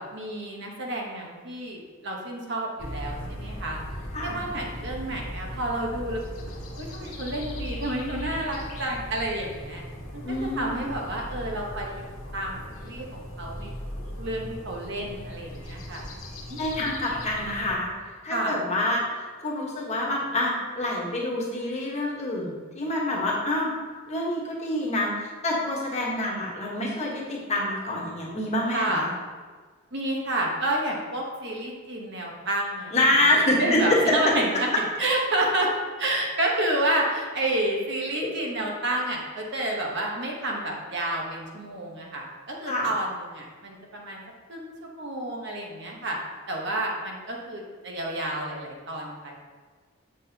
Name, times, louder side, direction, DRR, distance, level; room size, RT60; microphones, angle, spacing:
voice 1, 0.0-3.8 4.2-6.2 6.8-9.8 10.1-11.9 12.3-16.1 16.5-16.9 18.3-18.6 28.7-29.0 29.9-33.1 33.6-34.7 35.0-35.7 36.0-44.2 44.5-46.2 46.5-49.3, right 1 dB, 55° right, -1 dB, 1.2 m, -30 dB
sound 1, 2.8-17.8, equal, 80° left, 1.6 m, -38 dB
voice 2, 10.2-10.8 16.6-17.9 18.2-23.7 24.1-29.1 32.9-34.3 38.2-38.3 42.7-42.9, left 1 dB, 30° left, -3 dB, 1.3 m, -26 dB
7.6 x 6.1 x 2.9 m, 1.5 s
head